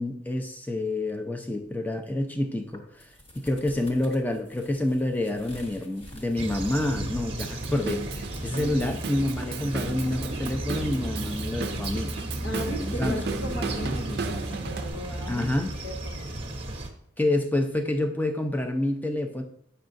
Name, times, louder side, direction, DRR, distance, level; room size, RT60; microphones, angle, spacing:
voice 1, 0.0-3.1 3.3-12.1 12.6-13.2 15.3-15.7 17.2-19.4, left 1 dB, 10° left, 5 dB, 0.5 m, -28 dB
sound 1, 2.6-13.5, equal, 30° left, 1.1 m, -49 dB
sound 2, 6.4-16.9, right 1 dB, 30° right, 0.8 m, -34 dB
Drum kit / Drum, 7.4-14.9, right 4 dB, 55° right, 0.4 m, -35 dB
voice 2, 8.5-9.0 12.4-15.5 15.8-16.3, equal, 55° left, -1 dB, 0.8 m, -36 dB
8.3 x 5.5 x 2.6 m, 0.74 s
head